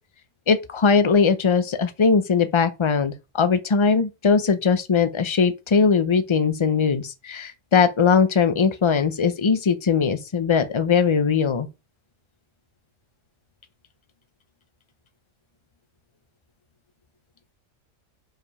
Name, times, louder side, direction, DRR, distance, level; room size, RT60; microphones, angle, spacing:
voice 1, 0.5-11.7, left 5 dB, 40° left, 0.4 m, -20 dB
5.1 x 4.9 x 5.4 m
omnidirectional pair, 1.5 m